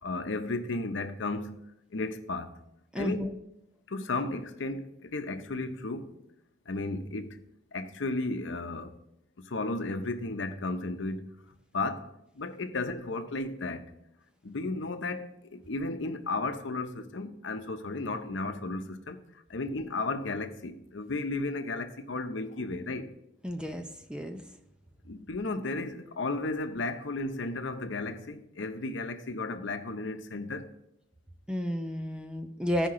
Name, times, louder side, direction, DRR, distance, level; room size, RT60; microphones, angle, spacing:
voice 1, 0.0-1.6 1.9-2.5 3.0-3.3 3.9-6.1 6.7-7.4 7.7-9.0 9.4-11.4 11.7-13.9 14.4-19.2 19.5-23.1 25.0-30.7, left 2 dB, 85° left, 0.8 m, -34 dB
voice 2, 2.9-3.3 23.4-24.4 31.5-32.9, equal, 5° right, 0.5 m, -32 dB
15.0 x 5.2 x 3.7 m
head